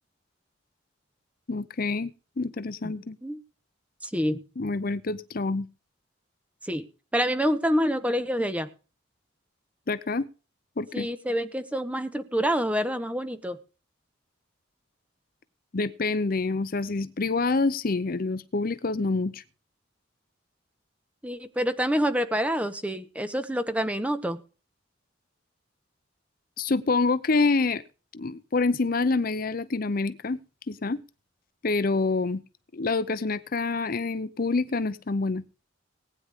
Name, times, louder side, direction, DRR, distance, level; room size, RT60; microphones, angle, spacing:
voice 1, 1.5-2.1 2.4-3.2 4.6-5.7 9.9-10.3 10.8-11.1 15.7-19.4 26.6-27.8 28.1-30.4 30.7-31.0 31.6-32.4 32.7-35.4, left 3 dB, 45° left, 15 dB, 0.6 m, -27 dB
voice 2, 4.0-4.4 6.6-6.8 7.1-8.7 10.9-13.6 21.2-24.4, equal, 5° right, 10 dB, 1.3 m, -27 dB
19.5 x 9.5 x 3.6 m, 0.35 s
head